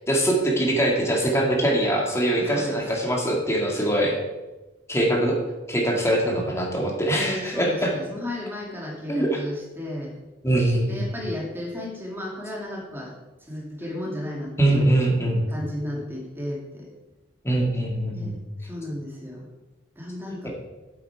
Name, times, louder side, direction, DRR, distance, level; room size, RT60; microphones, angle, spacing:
voice 1, 0.1-4.2 4.9-5.3 5.7-7.9 9.1-9.4 10.4-11.1 14.6-15.5 17.4-18.4, right 1 dB, 15° left, -1 dB, 2.1 m, -22 dB
voice 2, 2.4-2.8 7.1-10.1 10.9-13.1 13.4-14.9 15.5-16.9 18.1-18.4 18.6-19.5 20.0-20.5, left 1 dB, 10° right, -2 dB, 2.3 m, -34 dB
8.6 x 7.8 x 4.7 m, 1.1 s
head